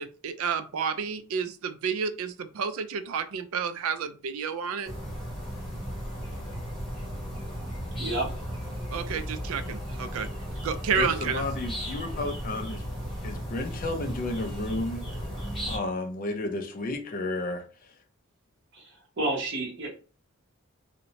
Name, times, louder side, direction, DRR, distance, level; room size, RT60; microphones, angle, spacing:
voice 1, 0.0-4.9 8.9-10.3 10.6-11.4, right 6 dB, 75° right, 0.3 m, -30 dB
sound 1, 4.8-15.8, equal, ahead, 1.0 m, -35 dB
voice 2, 8.0-8.3 18.7-19.9, right 2 dB, 55° right, 0.9 m, -30 dB
voice 3, 11.0-12.8 13.2-15.1 15.7-17.6, left 2 dB, 40° left, 0.4 m, -32 dB
2.6 x 2.1 x 2.8 m
head